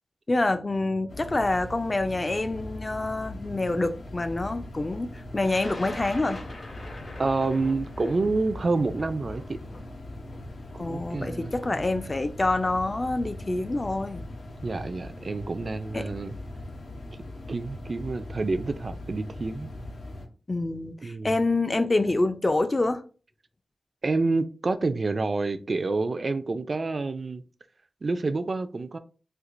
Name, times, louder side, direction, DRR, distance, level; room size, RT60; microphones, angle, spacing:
voice 1, 0.3-6.4 10.8-14.2 15.9-16.1 20.5-23.0, left 2 dB, 30° left, 0.4 m, -27 dB
sound 1, 1.1-20.3, left 1 dB, 80° left, 0.7 m, -40 dB
Thunder, 5.4-11.4 12.4-12.5 13.6-13.8 14.2-14.6, left 1 dB, 60° left, 1.5 m, -44 dB
voice 2, 7.2-9.6 10.8-11.8 14.6-16.3 17.5-19.7 21.0-21.3 24.0-27.4 28.0-29.0, right 3 dB, 45° right, 0.3 m, -28 dB
4.3 x 2.3 x 2.5 m
wide cardioid pair, 110°, 0 cm